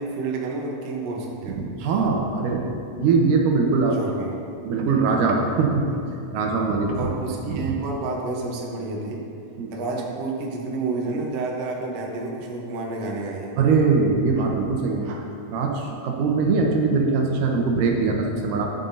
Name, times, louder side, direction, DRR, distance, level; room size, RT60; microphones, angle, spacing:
voice 1, 0.0-1.6 4.0-4.4 6.9-9.2 9.7-13.5, right 3 dB, 65° right, -1 dB, 1.7 m, -30 dB
voice 2, 1.4-2.7 3.0-4.0 4.6-6.0 6.3-7.0 7.5-7.7 9.6-9.7 13.6-18.7, right 4 dB, 80° right, 1 dB, 2.4 m, -22 dB
11.0 x 7.5 x 2.7 m, 2.6 s
omnidirectional pair, 3.9 m